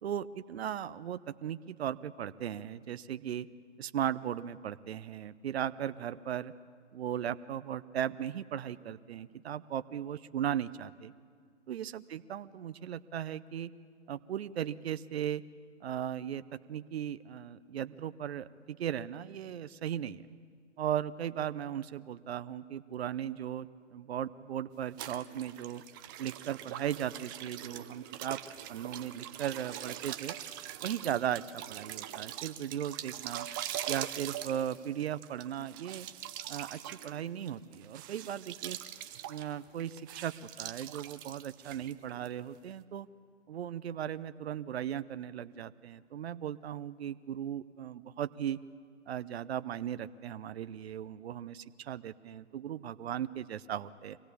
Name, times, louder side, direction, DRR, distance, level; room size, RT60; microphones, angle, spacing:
voice 1, 0.0-3.5 3.8-6.5 6.9-11.1 11.7-13.7 14.1-15.4 15.8-16.4 16.7-20.3 20.8-25.8 26.2-28.4 28.7-30.3 30.8-33.5 33.9-36.1 36.5-38.8 39.3-43.1 43.5-48.6 49.1-54.2, right 10 dB, 60° right, 14 dB, 0.8 m, -37 dB
sound 1, 25.0-42.4, right 12 dB, 20° right, 0.6 m, -43 dB
24.5 x 17.0 x 8.4 m, 2.1 s
hypercardioid pair, 140°, 36 cm